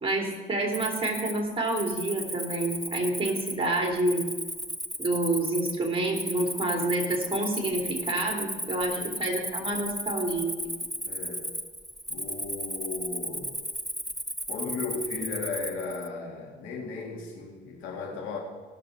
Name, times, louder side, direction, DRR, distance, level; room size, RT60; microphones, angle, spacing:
voice 1, 0.0-4.2 5.0-10.6, right 2 dB, 25° right, 0 dB, 2.9 m, -28 dB
Cricket, 0.7-16.1, equal, ahead, 0.6 m, -35 dB
voice 2, 9.0-9.4 11.0-11.5 12.1-13.5 14.5-18.4, left 4 dB, 90° left, -1 dB, 2.3 m, -36 dB
18.0 x 6.7 x 4.1 m, 1.3 s
cardioid pair, 90°, 20 cm